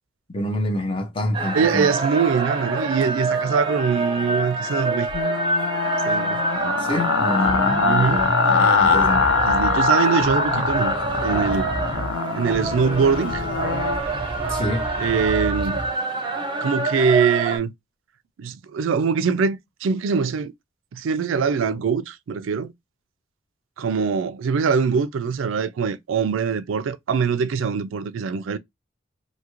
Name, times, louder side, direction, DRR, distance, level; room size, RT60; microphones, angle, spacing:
voice 1, 0.3-1.9 6.8-9.3 14.5-14.9, left 1 dB, 25° left, 0.6 m, -26 dB
sound 1, 1.3-17.6, right 3 dB, 25° right, 0.5 m, -26 dB
voice 2, 1.5-5.1 6.0-6.5 7.8-8.2 9.4-10.9 11.2-11.7 12.4-13.4 15.0-15.8 16.6-17.7 18.4-20.5 20.9-22.7 23.8-28.6, right 6 dB, 85° right, 0.4 m, -23 dB
sound 2, 5.1-14.0, left 6 dB, 80° left, 0.4 m, -23 dB
sound 3, 7.5-9.9 10.2-12.2 12.5-15.9, right 1 dB, 5° right, 0.8 m, -32 dB
2.7 x 2.4 x 2.9 m
head